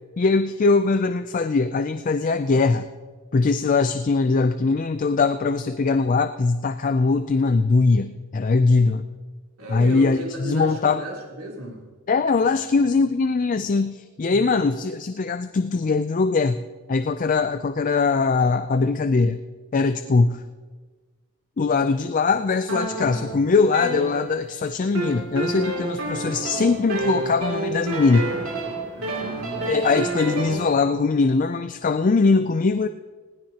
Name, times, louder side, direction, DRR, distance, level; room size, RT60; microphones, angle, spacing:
voice 1, 0.2-2.9 3.3-9.1 9.7-11.0 12.1-16.6 16.9-19.4 19.7-20.4 21.6-28.3 29.7-32.9, left 4 dB, 35° left, 10 dB, 0.4 m, -21 dB
voice 2, 9.6-11.8 14.2-14.7 28.9-29.7, right 1 dB, 90° right, -2 dB, 3.3 m, -35 dB
sound 1, 22.7-24.5 24.9-30.7, right 2 dB, 70° right, 2.7 m, -29 dB
20.0 x 16.0 x 2.9 m, 1.4 s
head